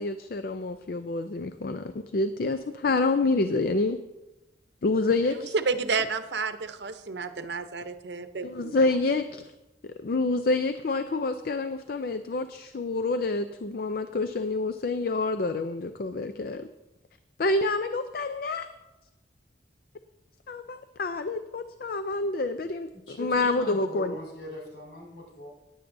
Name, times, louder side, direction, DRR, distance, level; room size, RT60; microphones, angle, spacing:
voice 1, 0.0-4.0 4.8-5.5 8.4-9.4 10.0-16.7 17.4-18.7 20.5-24.2, left 3 dB, 55° left, 9 dB, 0.5 m, -28 dB
voice 2, 5.3-8.8, right 4 dB, 75° right, 10 dB, 0.7 m, -31 dB
voice 3, 23.1-25.5, left 1 dB, 75° left, -3 dB, 4.5 m, -41 dB
17.0 x 10.5 x 2.6 m, 1.0 s
head